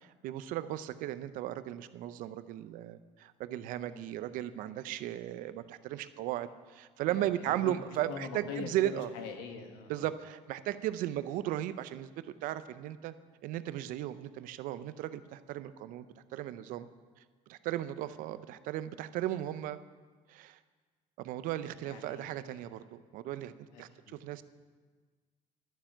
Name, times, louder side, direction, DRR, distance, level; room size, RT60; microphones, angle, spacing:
voice 1, 0.0-9.1 9.9-12.1 12.4-13.1 13.4-16.1 16.3-16.9 17.5-19.8 20.3-20.6 21.2-23.5 23.8-23.9 24.2-24.4, right 13 dB, 75° right, 13 dB, 0.6 m, -36 dB
voice 2, 7.1-7.8 8.0-10.1 21.8-22.6 23.7-24.2, left 6 dB, 90° left, 5 dB, 1.5 m, -44 dB
11.5 x 7.2 x 8.8 m, 1.4 s
supercardioid pair, 95°, 14 cm